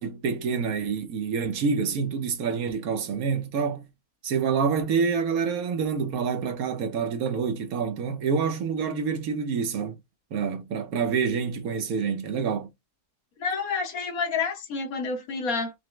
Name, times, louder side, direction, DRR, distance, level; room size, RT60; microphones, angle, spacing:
voice 1, 0.0-3.8 4.2-10.0 10.3-12.7, right 6 dB, 80° right, 1.3 m, -27 dB
voice 2, 13.4-15.7, left 4 dB, 75° left, 1.6 m, -29 dB
5.7 x 2.0 x 3.2 m
omnidirectional pair, 1.5 m